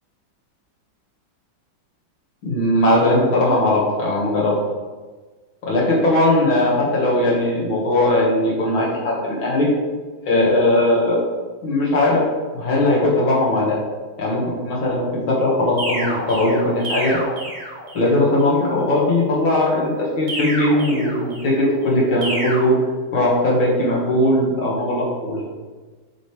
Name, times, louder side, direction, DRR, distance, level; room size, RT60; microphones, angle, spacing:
voice 1, 2.4-4.5 5.6-9.7 10.3-11.2 11.6-12.2 12.5-13.8 14.2-17.2 17.9-22.8 23.1-25.4, left 1 dB, 80° left, -5 dB, 2.5 m, -19 dB
sound 1, 15.8-18.2 20.3-21.6 22.2-22.6, right 1 dB, 70° right, 2.2 m, -29 dB
7.5 x 5.1 x 3.3 m, 1.3 s
omnidirectional pair, 2.2 m